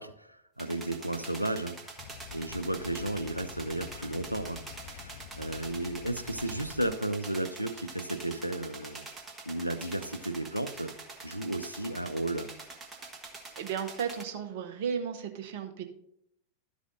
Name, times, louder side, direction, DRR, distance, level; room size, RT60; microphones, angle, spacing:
voice 1, 0.0-1.8 2.3-9.0 9.5-10.9 11.2-12.5, right 1 dB, 90° right, 0.5 m, -34 dB
sound 1, 0.6-14.2, right 3 dB, 15° right, 1.4 m, -46 dB
sound 2, 2.0-6.9, left 10 dB, 55° left, 0.4 m, -48 dB
voice 2, 13.6-15.8, right 7 dB, 50° right, 1.0 m, -34 dB
12.5 x 4.9 x 3.9 m
figure-of-eight pair, 90°, 0 cm